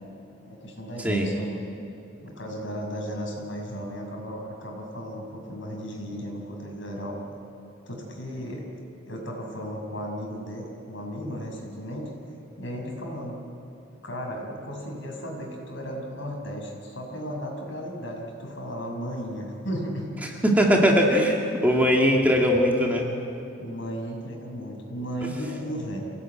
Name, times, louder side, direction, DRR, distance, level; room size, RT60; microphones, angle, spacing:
voice 1, 0.5-1.5 2.2-7.2 7.9-8.6 9.1-12.1 12.6-13.4 14.0-20.1 23.6-26.0, equal, 70° left, 0 dB, 6.3 m, -35 dB
voice 2, 20.4-23.1, equal, 10° right, -1 dB, 2.2 m, -20 dB
27.0 x 17.5 x 9.2 m, 2.7 s
head